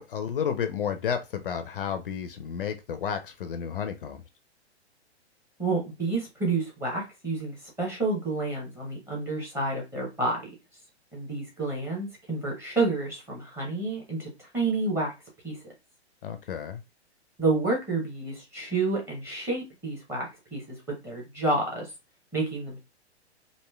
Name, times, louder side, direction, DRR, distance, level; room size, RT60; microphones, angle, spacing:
voice 1, 0.0-4.2 16.2-16.8, left 7 dB, 55° left, 8 dB, 0.4 m, -31 dB
voice 2, 5.6-10.4 11.1-15.1 15.4-15.6 17.4-21.9 22.3-22.8, right 3 dB, 5° right, -2 dB, 0.8 m, -29 dB
3.1 x 2.6 x 2.2 m, 0.25 s
figure-of-eight pair, 115°, 34 cm